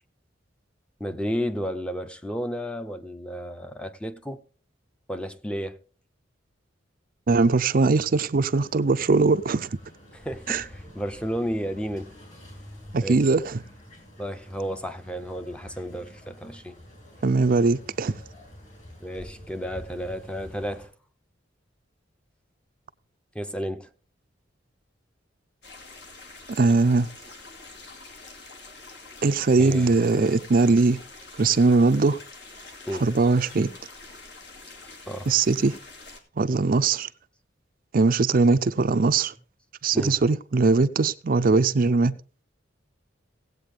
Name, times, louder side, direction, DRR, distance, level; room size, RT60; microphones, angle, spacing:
voice 1, 1.0-4.4 5.1-5.8 10.1-12.1 13.0-13.3 14.2-16.8 19.0-20.9 23.3-23.9 29.6-29.9 32.9-33.1 35.1-35.3 39.9-40.2, equal, 5° left, 0.7 m, -32 dB
voice 2, 7.3-9.7 10.5-10.6 12.9-13.6 17.2-18.1 26.5-27.1 29.2-31.0 31.4-32.2 33.0-33.7 35.3-35.7 36.4-37.1 37.9-39.3 39.8-42.1, right 3 dB, 50° right, 0.5 m, -21 dB
sound 1, 8.4-20.9, left 1 dB, 45° left, 7.2 m, -47 dB
sound 2, 25.6-36.2, left 3 dB, 65° left, 2.3 m, -46 dB
17.5 x 8.2 x 3.4 m
head